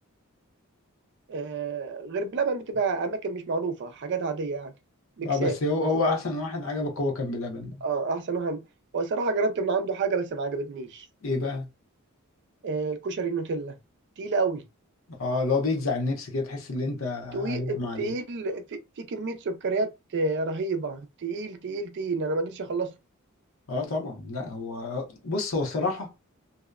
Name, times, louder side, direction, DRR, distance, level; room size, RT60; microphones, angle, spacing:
voice 1, 1.3-4.7 5.2-5.6 6.0-6.2 7.8-8.6 8.9-11.1 12.6-13.8 14.2-14.6 17.3-23.0, right 3 dB, 55° right, 0.4 m, -29 dB
voice 2, 5.2-7.8 11.2-11.7 15.1-18.1 23.7-26.1, left 3 dB, 70° left, 0.9 m, -29 dB
2.6 x 2.1 x 2.3 m
head